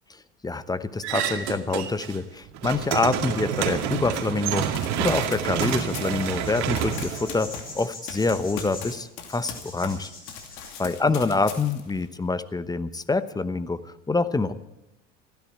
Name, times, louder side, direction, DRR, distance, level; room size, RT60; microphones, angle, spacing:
voice 1, 0.4-4.7 5.0-10.1 10.8-13.8 14.1-14.5, left 3 dB, 10° left, 14 dB, 0.9 m, -26 dB
sound 1, 1.0-2.2 2.5-7.8, right 9 dB, 50° right, 2.2 m, -28 dB
Run, 4.7-10.0 10.3-12.0, left 7 dB, 55° left, 2.8 m, -40 dB
sound 2, 5.9-10.9, left 2 dB, 25° left, 5.8 m, -43 dB
29.0 x 10.5 x 4.5 m, 0.94 s
figure-of-eight pair, 70°, 35 cm